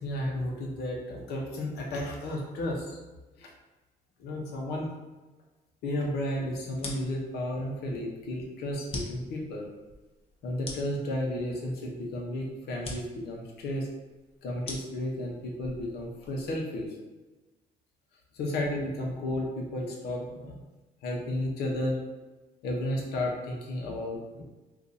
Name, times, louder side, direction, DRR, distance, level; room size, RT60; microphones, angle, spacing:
voice 1, 0.0-3.0 3.4-3.5 4.2-4.9 5.8-9.7 10.4-13.9 14.4-17.0 18.3-20.6 21.0-22.0 22.6-24.4, left 1 dB, 75° left, -1 dB, 0.9 m, -33 dB
sound 1, 6.8-16.6, left 2 dB, 35° left, 0.8 m, -44 dB
2.8 x 2.6 x 3.8 m, 1.1 s
cardioid pair, 110°, 17 cm